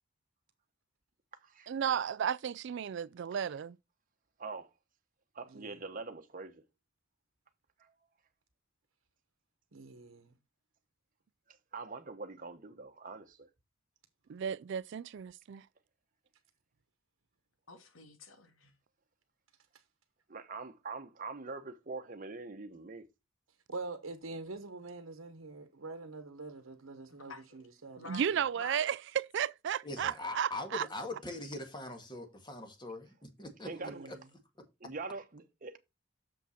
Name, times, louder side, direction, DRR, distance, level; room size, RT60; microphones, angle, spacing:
voice 1, 1.7-3.8 14.3-15.6 28.1-30.9, right 8 dB, 60° right, 0.4 m, -34 dB
voice 2, 5.3-6.6 7.8-7.9 11.7-13.5 20.3-23.0 33.6-34.1 34.8-35.8, right 3 dB, 40° right, 1.0 m, -43 dB
voice 3, 9.7-10.3 23.7-28.4 33.8-34.2, right 3 dB, 90° right, 1.1 m, -45 dB
voice 4, 17.7-18.7 27.1-27.7 28.0-28.9, left 3 dB, 75° left, 2.0 m, -50 dB
voice 5, 29.8-34.2, left 2 dB, 20° left, 1.8 m, -42 dB
7.0 x 6.0 x 4.3 m
head